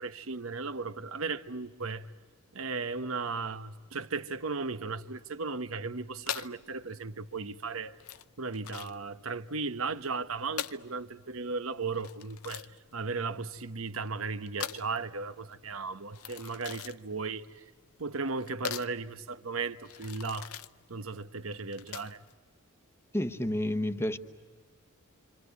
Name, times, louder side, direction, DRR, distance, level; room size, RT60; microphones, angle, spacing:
voice 1, 0.0-2.1 2.5-8.0 8.4-17.6 18.0-20.5 20.9-22.2, right 4 dB, 70° right, 1.0 m, -36 dB
sound 1, 6.2-22.3, left 9 dB, 90° left, 0.8 m, -43 dB
voice 2, 23.1-24.2, left 1 dB, 10° left, 1.1 m, -30 dB
27.5 x 26.5 x 8.2 m
head